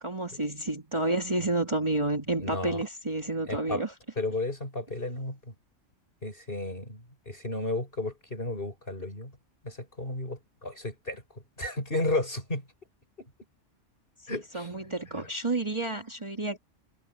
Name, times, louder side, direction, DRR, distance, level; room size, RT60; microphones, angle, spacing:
voice 1, 0.0-3.9 14.3-16.6, right 2 dB, 25° right, 2.2 m, -30 dB
voice 2, 2.4-2.8 3.5-3.8 4.2-5.5 6.2-9.3 9.6-12.6 13.2-13.3 14.3-14.7 15.2-15.3, left 2 dB, 45° left, 6.5 m, -33 dB
omnidirectional pair, 1.3 m